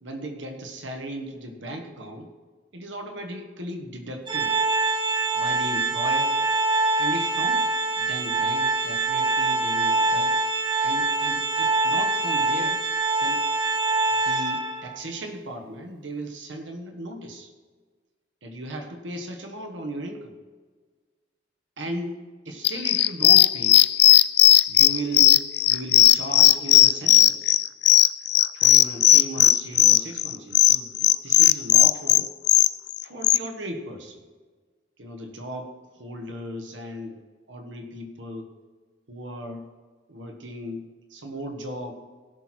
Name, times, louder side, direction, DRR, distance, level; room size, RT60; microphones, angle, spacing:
voice 1, 0.0-2.3 2.7-4.6 5.3-6.4 7.0-7.7 8.0-10.3 10.8-12.8 13.2-13.4 14.2-17.5 18.4-20.3 21.8-23.8 24.7-27.5 28.5-32.3 33.0-34.2 35.0-37.2 37.5-38.5 39.1-39.7 40.1-41.9, right 1 dB, 85° right, 4 dB, 1.4 m, -36 dB
Organ, 4.3-15.0, right 3 dB, 25° right, 0.9 m, -24 dB
sound 1, 22.6-33.4, left 13 dB, 60° left, 0.4 m, -16 dB
17.0 x 6.1 x 4.4 m, 1.5 s
head